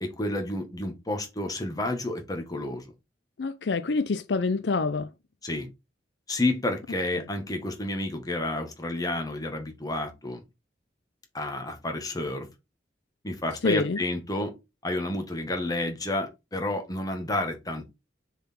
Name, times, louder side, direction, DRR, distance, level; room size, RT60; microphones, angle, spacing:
voice 1, 0.0-2.8 5.4-5.7 6.3-10.4 11.3-12.5 13.2-14.6 14.8-17.9, left 1 dB, 20° left, 1.5 m, -30 dB
voice 2, 3.4-5.1 7.1-7.2 13.6-14.0, left 3 dB, 65° left, 0.5 m, -26 dB
6.8 x 4.1 x 4.3 m
head